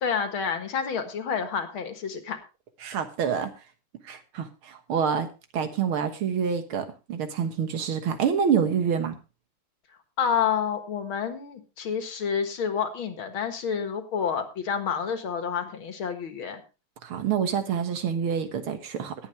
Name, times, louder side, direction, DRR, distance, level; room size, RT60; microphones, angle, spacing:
voice 1, 0.0-2.4 10.2-16.6, left 7 dB, 70° left, 7 dB, 2.4 m, -29 dB
voice 2, 2.8-3.5 4.1-5.3 5.5-9.2 17.0-19.1, right 7 dB, 75° right, 8 dB, 2.2 m, -27 dB
19.0 x 8.3 x 3.3 m, 0.31 s
omnidirectional pair, 2.3 m